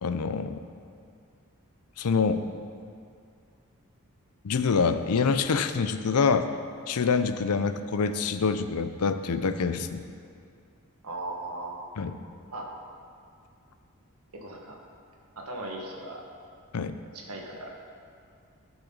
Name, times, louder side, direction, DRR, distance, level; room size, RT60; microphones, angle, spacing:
voice 1, 0.0-0.6 2.0-2.4 4.4-6.5 6.9-10.0 12.0-12.1 16.7-16.9, left 5 dB, 90° left, 10 dB, 0.5 m, -26 dB
voice 2, 11.0-11.9 12.5-12.7 14.3-14.8 15.3-16.2 17.1-17.7, right 2 dB, 90° right, 0 dB, 1.6 m, -38 dB
15.5 x 6.1 x 4.0 m, 2.4 s
head